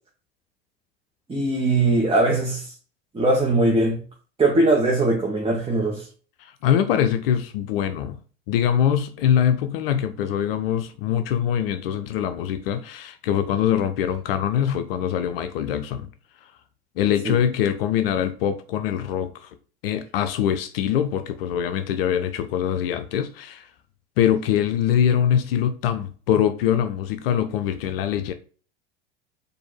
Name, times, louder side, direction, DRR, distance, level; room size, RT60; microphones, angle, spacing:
voice 1, 1.3-2.6 3.1-4.0 4.4-6.1 17.2-17.3, right 2 dB, 15° right, 1.3 m, -20 dB
voice 2, 6.4-8.2 8.5-16.1 17.0-19.5 19.8-23.7 24.2-28.3, left 9 dB, 60° left, 0.6 m, -23 dB
4.4 x 2.7 x 4.5 m
figure-of-eight pair, 80°, 32 cm